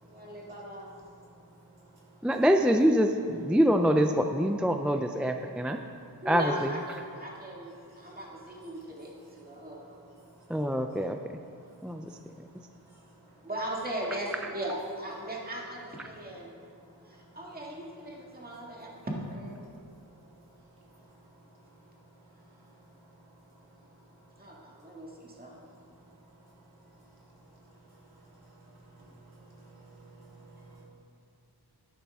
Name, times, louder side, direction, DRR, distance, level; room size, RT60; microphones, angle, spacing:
voice 1, 0.0-0.9 6.2-10.0 13.4-16.5 17.1-19.6 24.4-25.5, right 1 dB, 20° right, -3 dB, 2.0 m, -38 dB
voice 2, 2.2-5.8 6.3-6.7 10.5-11.2 11.8-12.0, equal, 5° right, 5 dB, 0.4 m, -25 dB
voice 3, 29.5-30.8, right 3 dB, 65° right, -5 dB, 2.9 m, -53 dB
11.5 x 11.0 x 3.5 m, 2.4 s
wide cardioid pair, 90°, 40 cm